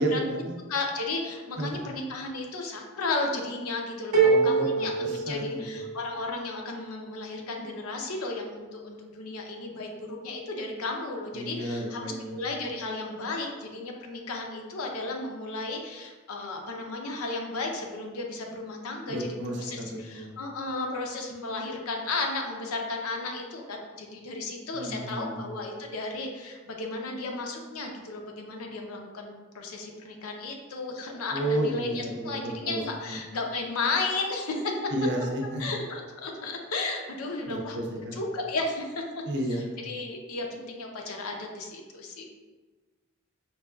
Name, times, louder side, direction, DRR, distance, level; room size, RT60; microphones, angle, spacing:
voice 1, 0.0-0.6 1.6-1.8 4.2-5.8 11.3-12.4 19.1-20.4 24.7-25.5 31.3-32.8 33.1-33.2 34.9-35.7 37.5-38.2 39.3-39.7, right 1 dB, 50° right, 1 dB, 0.5 m, -32 dB
voice 2, 0.7-19.3 19.6-34.9 35.6-39.0 39.9-42.2, left 3 dB, 75° left, 2 dB, 0.5 m, -34 dB
sound 1, 4.1-6.1, right 4 dB, 90° right, 0.7 m, -24 dB
5.4 x 2.3 x 2.2 m, 1.3 s
head